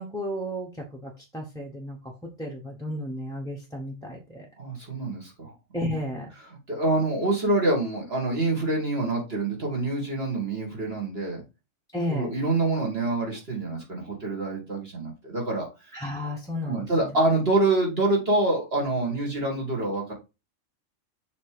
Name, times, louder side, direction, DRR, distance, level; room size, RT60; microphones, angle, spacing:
voice 1, 0.0-2.1 2.4-4.4 5.7-6.3 11.9-12.3 15.9-17.1, left 1 dB, 5° left, -2 dB, 0.9 m, -33 dB
voice 2, 4.6-5.5 5.8-6.0 6.7-11.4 12.1-15.7 16.7-20.1, right 2 dB, 50° right, -2 dB, 2.3 m, -26 dB
6.9 x 3.3 x 4.9 m, 0.27 s
omnidirectional pair, 1.3 m